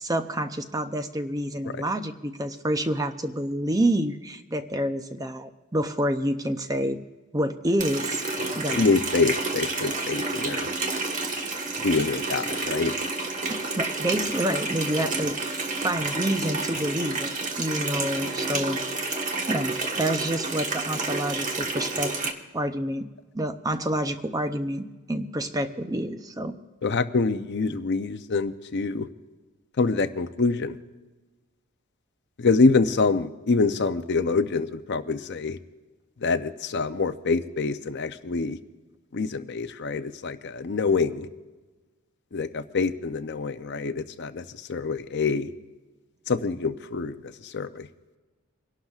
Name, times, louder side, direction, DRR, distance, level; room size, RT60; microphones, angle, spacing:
voice 1, 0.0-7.0 7.3-8.2 8.6-8.9 13.8-18.8 19.5-22.1 22.5-23.1 23.3-26.5, right 1 dB, 15° right, 8 dB, 0.6 m, -28 dB
Water tap faucet, 7.8-22.3, right 3 dB, 35° right, 1.3 m, -30 dB
voice 2, 8.7-10.7 11.8-12.9 26.8-29.1 29.8-30.8 32.4-35.6 36.2-38.6 39.1-41.3 42.3-44.4 44.7-45.5 46.3-47.2 47.4-47.9, left 4 dB, 50° left, 10 dB, 0.6 m, -25 dB
29.0 x 11.5 x 2.4 m, 1.2 s
head